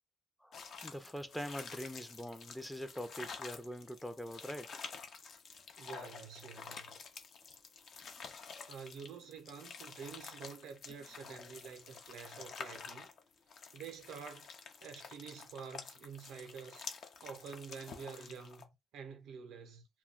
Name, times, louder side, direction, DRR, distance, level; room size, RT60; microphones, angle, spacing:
voice 1, 0.4-4.8, equal, 5° left, 0.4 m, -43 dB
sound 1, 0.5-18.6, left 5 dB, 60° left, 0.5 m, -49 dB
voice 2, 5.8-7.0 8.7-13.1 13.7-14.5 14.8-16.8 17.2-19.9, right 6 dB, 85° right, 0.6 m, -48 dB
2.3 x 2.2 x 3.7 m
cardioid pair, 90°, 0 cm